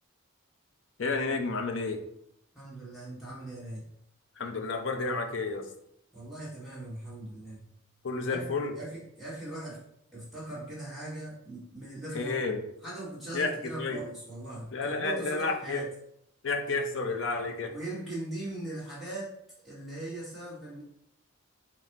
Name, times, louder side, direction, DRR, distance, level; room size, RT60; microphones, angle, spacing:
voice 1, 1.0-2.0 4.4-5.7 8.0-8.7 12.1-12.6 13.3-14.0 14.7-15.8 16.4-17.7, left 3 dB, 60° left, 5 dB, 0.5 m, -31 dB
voice 2, 2.5-3.9 6.1-7.7 8.3-9.8 10.1-12.4 12.8-15.9 17.7-19.3 19.6-20.8, right 1 dB, ahead, -8 dB, 1.1 m, -40 dB
4.0 x 2.0 x 4.4 m, 0.73 s
head